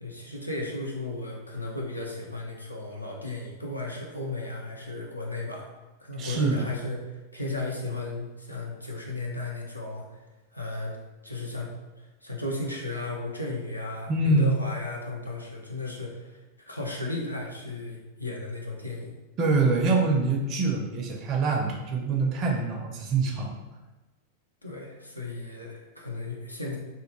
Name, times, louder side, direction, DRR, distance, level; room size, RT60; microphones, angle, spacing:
voice 1, 0.0-5.7 6.0-10.2 10.5-11.0 11.2-11.7 12.0-19.2 24.6-26.8, left 2 dB, 85° left, -1 dB, 0.5 m, -35 dB
voice 2, 6.2-6.7 14.1-14.6 19.4-23.6, right 3 dB, 35° right, 1 dB, 0.4 m, -25 dB
2.6 x 2.2 x 2.9 m, 1.1 s
figure-of-eight pair, 90°, 0 cm